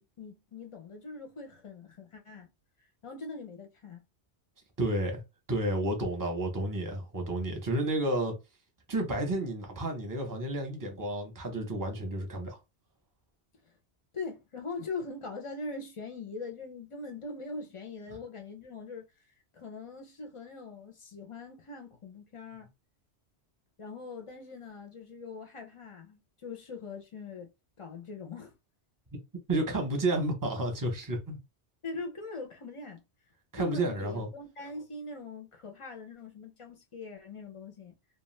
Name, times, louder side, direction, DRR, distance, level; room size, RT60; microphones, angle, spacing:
voice 1, 0.0-2.5 3.0-4.0 14.1-19.1 19.5-22.7 23.8-27.5 27.8-28.5 31.8-33.0 33.6-38.0, left 3 dB, 45° left, 0.4 m, -42 dB
voice 2, 4.8-5.2 5.5-8.3 8.9-12.6 29.5-31.4 33.5-34.3, right 1 dB, 20° right, 0.7 m, -31 dB
2.3 x 2.3 x 3.1 m
omnidirectional pair, 1.1 m